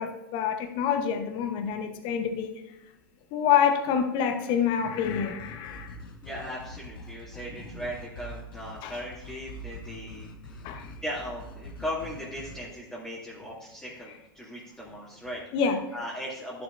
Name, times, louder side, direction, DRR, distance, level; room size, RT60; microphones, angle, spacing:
voice 1, 0.0-2.5 3.3-6.0 8.8-9.0 10.6-10.9 15.5-15.8, left 7 dB, 45° left, 6 dB, 1.1 m, -27 dB
sound 1, 5.0-12.7, equal, 75° left, 1.5 m, -44 dB
voice 2, 6.2-10.3 10.5-15.4 15.9-16.6, equal, 5° left, -8 dB, 2.6 m, -38 dB
12.5 x 7.1 x 2.6 m, 0.95 s
hypercardioid pair, 95°, 11 cm